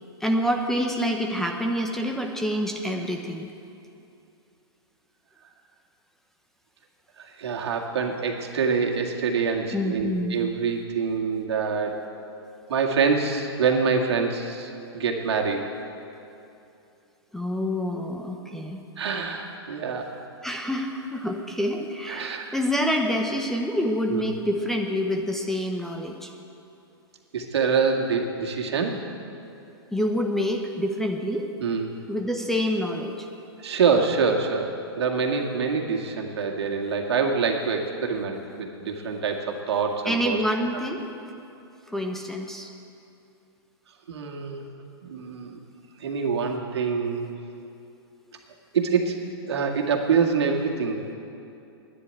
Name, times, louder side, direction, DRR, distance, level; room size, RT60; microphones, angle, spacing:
voice 1, 0.2-3.5 9.7-10.4 17.3-18.8 20.4-26.3 29.9-31.5 32.1-33.3 40.0-41.1 41.9-42.7, equal, 5° left, 2 dB, 0.7 m, -27 dB
voice 2, 7.2-11.9 12.7-15.6 19.0-20.1 22.1-22.6 24.1-24.2 27.3-28.9 31.6-31.9 33.6-34.7 35.0-40.4 44.1-44.6 45.0-45.6 46.0-47.3 48.7-49.2 49.5-51.1, right 5 dB, 75° right, 1 dB, 2.0 m, -25 dB
11.5 x 9.9 x 9.0 m, 2.7 s
hypercardioid pair, 145°, 14 cm